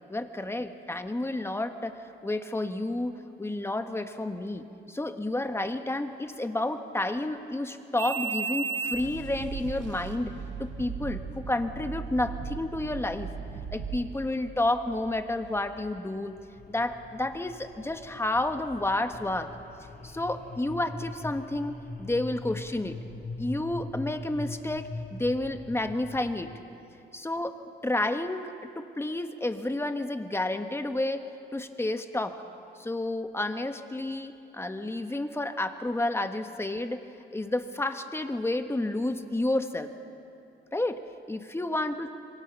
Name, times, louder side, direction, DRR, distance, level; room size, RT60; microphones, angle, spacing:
voice 1, 0.1-13.3 13.7-16.4 16.7-19.5 20.0-23.0 23.4-26.5 27.1-31.3 31.5-32.4 32.8-37.0 37.3-39.9 40.7-41.0 41.3-42.1, left 2 dB, 10° left, 7 dB, 1.4 m, -30 dB
sound 1, 8.0-14.1, right 6 dB, 70° right, 2.0 m, -36 dB
sound 2, 10.1-26.6, left 2 dB, 50° left, 2.7 m, -43 dB
27.0 x 23.0 x 5.9 m, 2.7 s
cardioid pair, 90°, 20 cm